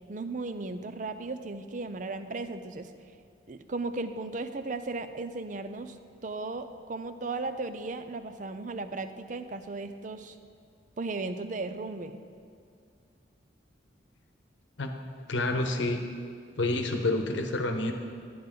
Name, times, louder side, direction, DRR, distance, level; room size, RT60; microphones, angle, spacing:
voice 1, 0.1-2.9 3.5-6.0 6.2-10.4 11.0-12.2, right 3 dB, 45° right, 10 dB, 0.5 m, -36 dB
voice 2, 15.3-16.0 16.6-17.9, left 2 dB, 85° left, 5 dB, 1.0 m, -28 dB
12.0 x 10.0 x 3.8 m, 2.3 s
head